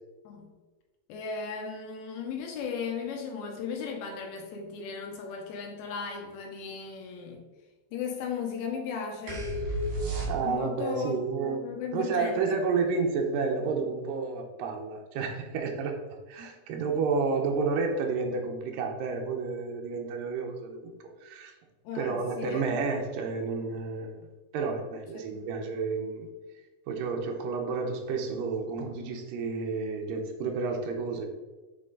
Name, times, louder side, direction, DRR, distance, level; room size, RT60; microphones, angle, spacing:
voice 1, 1.1-7.4 7.9-9.5 10.4-12.6 21.9-22.7 25.3-25.5, left 5 dB, 80° left, 3 dB, 2.4 m, -36 dB
sound 1, 9.3-10.8, right 1 dB, 60° right, 2.5 m, -31 dB
voice 2, 10.3-11.6 11.9-16.0 16.3-20.9 21.2-21.5 22.0-24.1 24.5-26.3 26.9-31.3, right 4 dB, 80° right, 2 dB, 2.1 m, -30 dB
7.6 x 3.7 x 3.8 m, 1.2 s
omnidirectional pair, 4.7 m